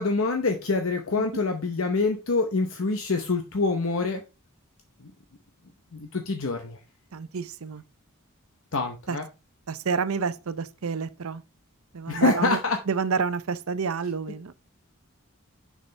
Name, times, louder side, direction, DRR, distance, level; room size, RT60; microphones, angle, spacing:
voice 1, 0.0-4.2 5.0-5.1 5.9-6.8 8.7-9.3 12.1-12.8, left 3 dB, 65° left, 0.8 m, -26 dB
voice 2, 7.1-7.8 9.1-9.2 9.7-11.4 11.9-12.6 12.9-14.5, right 5 dB, 75° right, 0.6 m, -29 dB
6.8 x 5.9 x 3.3 m
head